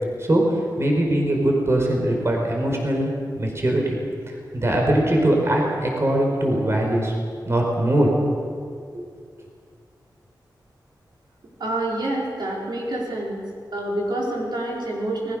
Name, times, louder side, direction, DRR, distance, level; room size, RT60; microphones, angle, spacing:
voice 1, 0.8-4.0 4.3-7.1 7.5-8.1 8.9-9.1, right 1 dB, 35° right, 0 dB, 5.0 m, -21 dB
voice 2, 11.6-13.4 13.7-15.3, right 1 dB, 70° right, -3 dB, 5.3 m, -27 dB
28.5 x 21.0 x 6.6 m, 2.2 s
wide cardioid pair, 115°, 8 cm